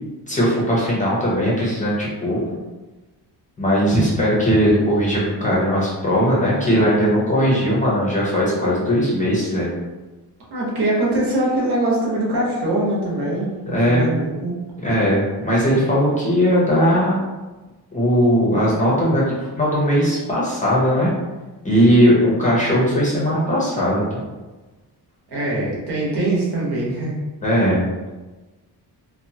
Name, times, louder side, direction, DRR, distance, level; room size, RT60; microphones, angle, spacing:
voice 1, 0.3-2.4 3.6-9.7 13.7-14.1 14.8-17.2 17.9-19.2 19.6-21.1 21.6-24.2 27.4-27.9, equal, 20° left, -6 dB, 0.6 m, -18 dB
voice 2, 10.5-14.5 25.3-27.2, right 1 dB, 70° right, -5 dB, 1.0 m, -22 dB
2.8 x 2.1 x 2.7 m, 1.2 s
wide cardioid pair, 165°, 42 cm